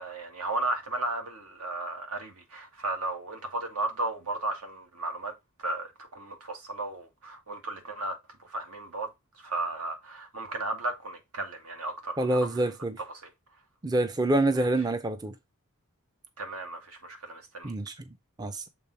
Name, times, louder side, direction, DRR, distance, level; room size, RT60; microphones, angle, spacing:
voice 1, 0.0-12.6 13.1-13.3 14.6-14.7 16.4-17.7, right 2 dB, 80° right, 1.9 m, -35 dB
voice 2, 12.2-13.0 13.8-15.3 17.6-17.9 18.4-18.6, right 2 dB, 20° right, 0.5 m, -26 dB
6.9 x 3.6 x 4.0 m
head